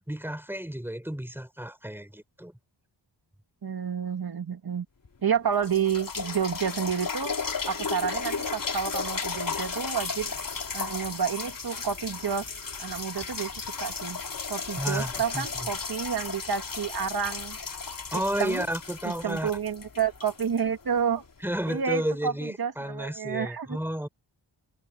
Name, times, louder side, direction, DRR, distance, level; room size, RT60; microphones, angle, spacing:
voice 1, 0.1-2.5 14.8-15.7 18.1-19.5 21.4-24.1, equal, 5° right, 4.3 m, -32 dB
voice 2, 3.6-4.9 5.2-7.4 7.7-10.3 10.7-12.5 12.8-13.5 13.8-14.2 14.5-17.6 18.1-18.7 19.0-21.2 21.7-23.8, right 7 dB, 55° right, 2.5 m, -30 dB
sound 1, 5.1-5.2 5.6-21.3 21.9-22.0, left 5 dB, 45° left, 3.2 m, -35 dB
cardioid pair, 75°, 44 cm